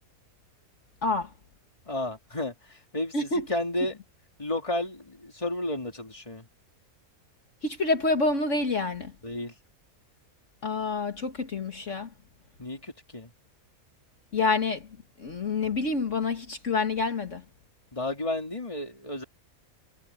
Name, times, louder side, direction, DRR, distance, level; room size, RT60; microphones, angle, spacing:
voice 1, 1.0-1.3 3.1-3.5 7.6-9.1 10.6-12.1 14.3-14.9 15.2-17.4, left 3 dB, 60° left, 2.1 m, -27 dB
voice 2, 1.9-4.0 4.4-6.4 9.2-9.5 12.6-13.3 17.9-19.2, left 1 dB, 20° left, 3.0 m, -32 dB
omnidirectional pair, 1.5 m